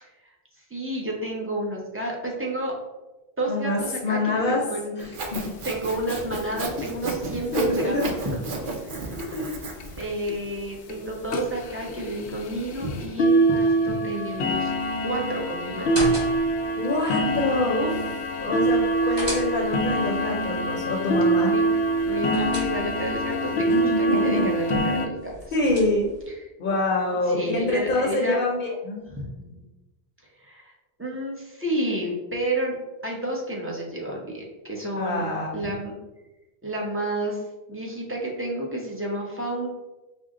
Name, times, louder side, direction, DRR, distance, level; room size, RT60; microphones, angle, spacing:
voice 1, 0.7-2.8 3.4-5.1 5.6-8.4 10.0-14.7 15.0-16.0 21.5-21.8 22.0-25.3 26.3-26.4 27.3-28.4 29.1-29.6 30.4-30.7 31.0-32.8 33.0-35.9 36.6-37.4 37.7-39.7, right 1 dB, 15° right, -3 dB, 0.6 m, -30 dB
voice 2, 3.5-4.6 5.0-5.5 7.5-8.1 9.3-9.6 16.8-21.5 23.7-24.5 25.5-26.1 26.6-29.1 35.0-35.7, left 2 dB, 55° left, -2 dB, 0.8 m, -26 dB
Sawing, 5.0-10.1, right 3 dB, 60° right, 0.8 m, -33 dB
sound 1, 5.3-5.4 5.7-5.8 6.0-6.2 6.5-6.9 7.6-7.7 8.2-8.3 8.7-8.8 9.2-9.3 9.8-9.9 10.3-10.5 10.9-11.0 11.3-25.1, right 2 dB, 90° left, 0.9 m, -25 dB
sound 2, 15.8-16.7 18.7-19.9 21.9-23.2 25.2-26.3, equal, 40° right, 1.7 m, -35 dB
5.2 x 2.1 x 3.7 m, 1.1 s
omnidirectional pair, 1.1 m